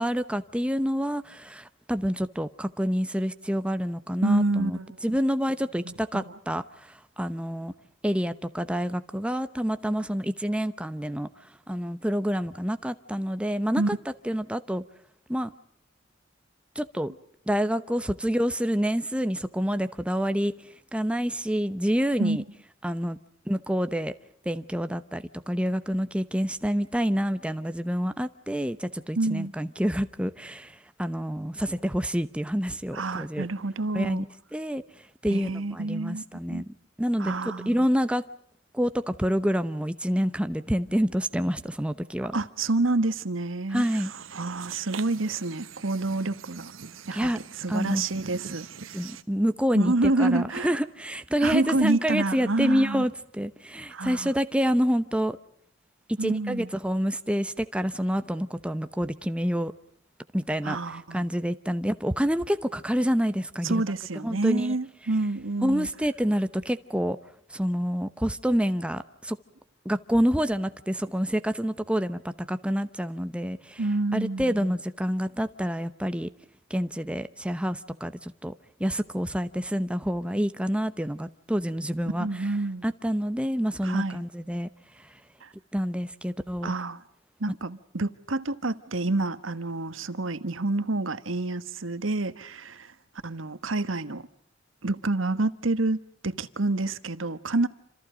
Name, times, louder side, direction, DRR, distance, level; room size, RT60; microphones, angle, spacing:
voice 1, 0.0-7.7 8.0-11.3 11.7-14.0 14.2-14.8 15.3-15.5 16.7-17.1 17.5-20.5 20.9-22.4 22.8-23.2 23.5-24.1 24.4-33.5 33.9-34.3 34.5-34.8 35.2-36.7 37.0-37.4 37.7-38.2 38.7-42.4 43.7-44.1 47.1-47.4 47.7-48.1 48.9-55.4 56.2-59.7 60.3-60.8 61.1-63.8 64.2-64.8 65.6-67.2 67.5-69.4 69.8-73.8 74.1-76.3 76.7-78.5 78.8-82.3 82.8-84.7 85.0-85.1 85.7-86.7, equal, 5° right, 0.9 m, -27 dB
voice 2, 4.2-5.0 5.8-6.2 13.8-13.9 22.2-22.4 29.1-29.5 32.9-34.2 35.3-36.6 37.2-37.8 42.3-43.8 44.3-46.7 47.1-47.3 47.6-48.7 49.7-50.7 51.4-53.0 53.9-54.3 56.2-56.7 60.6-61.3 63.6-65.9 73.8-74.8 82.2-82.8 83.8-84.2 85.4-85.5 86.6-87.0 87.4-92.9 93.2-94.2 94.8-96.0 96.2-97.7, right 2 dB, 75° right, 1.4 m, -28 dB
sound 1, 43.7-49.2, right 6 dB, 90° right, 1.2 m, -43 dB
28.0 x 27.0 x 5.1 m
head